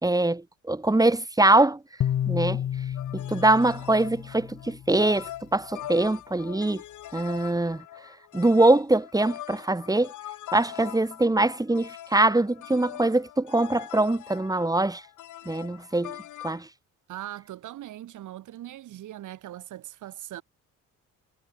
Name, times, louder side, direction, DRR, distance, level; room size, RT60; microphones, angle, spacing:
voice 1, 0.0-1.8 2.3-2.6 3.1-6.8 7.1-7.8 8.3-10.1 10.5-15.0 15.5-16.2 16.4-16.6, right 2 dB, 10° right, 2.8 m, -23 dB
sound 1, 2.0-5.3, left 10 dB, 65° left, 3.0 m, -31 dB
sound 2, 3.0-16.6, left 13 dB, 80° left, 2.8 m, -42 dB
voice 2, 17.1-20.4, right 13 dB, 80° right, 3.3 m, -40 dB
cardioid pair, 90°, 30 cm